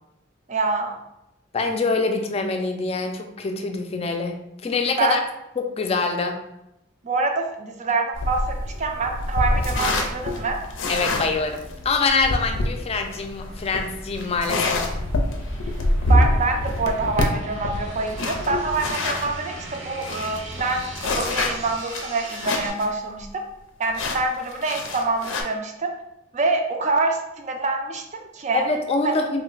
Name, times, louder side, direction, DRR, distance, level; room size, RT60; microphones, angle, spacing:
voice 1, 0.5-1.0 5.0-5.2 7.0-10.6 16.1-23.4 23.8-25.9 26.3-28.6 29.0-29.2, right 3 dB, 40° right, 4 dB, 0.4 m, -26 dB
voice 2, 1.5-5.2 5.6-6.4 10.9-14.8 28.5-29.4, left 4 dB, 30° left, 4 dB, 0.4 m, -25 dB
sound 1, 8.1-19.3 19.7-19.8 20.0-22.9 23.2-23.3 23.9-25.4, left 1 dB, 90° left, 0.5 m, -25 dB
sound 2, 8.1-21.8, equal, 65° right, 0.9 m, -41 dB
sound 3, 12.1-22.7, right 2 dB, 90° right, 0.7 m, -42 dB
3.1 x 2.1 x 3.8 m, 0.88 s
head